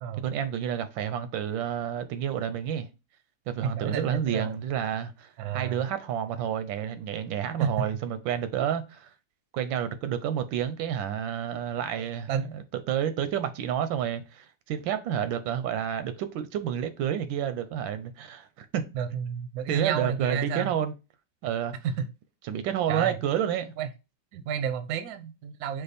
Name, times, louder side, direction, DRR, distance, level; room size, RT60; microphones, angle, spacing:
voice 1, 0.2-2.9 3.5-9.1 9.5-18.8 19.7-20.9 21.4-21.7 22.5-23.7, right 9 dB, 85° right, 1.4 m, -30 dB
voice 2, 3.6-4.6 5.4-5.8 7.6-7.9 12.3-12.5 18.9-20.7 21.8-22.1 22.9-23.2 23.8-23.9 24.3-25.8, right 7 dB, 70° right, 0.9 m, -31 dB
5.1 x 2.3 x 4.0 m
omnidirectional pair, 2.0 m